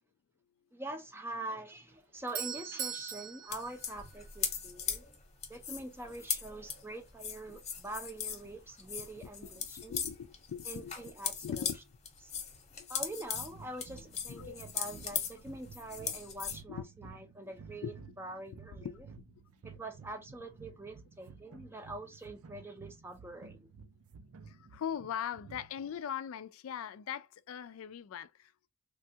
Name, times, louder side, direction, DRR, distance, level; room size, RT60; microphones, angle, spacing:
voice 1, 0.7-5.0 5.5-10.0 10.7-11.7 12.9-18.9 19.6-23.7, right 2 dB, 10° right, 0.5 m, -44 dB
Doorbell, 1.9-4.8, right 8 dB, 60° right, 0.8 m, -41 dB
sound 1, 3.5-8.5 8.8-11.8 12.0-16.6, left 7 dB, 30° left, 0.8 m, -39 dB
voice 2, 9.8-10.9 11.4-11.8 12.8-12.9 14.3-14.6 15.0-15.2 16.7-17.2 17.8-18.0 18.8-19.0 24.5-28.7, left 8 dB, 75° left, 0.3 m, -41 dB
sound 2, 13.3-26.0, right 5 dB, 85° right, 0.5 m, -53 dB
3.4 x 2.3 x 2.7 m
head